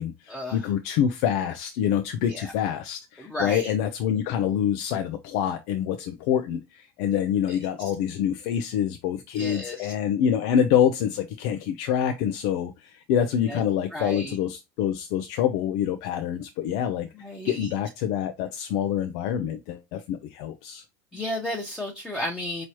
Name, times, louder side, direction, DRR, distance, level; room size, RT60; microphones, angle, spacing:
voice 1, 0.0-17.1 17.4-20.8, left 9 dB, 70° left, 0.6 m, -26 dB
voice 2, 3.2-3.7 7.0-7.1 7.5-7.6 9.3-9.9 13.5-13.6 13.9-14.4 17.2-17.7 21.1-22.7, left 1 dB, 5° left, 1.0 m, -33 dB
4.7 x 3.0 x 2.9 m
supercardioid pair, 105°, 9 cm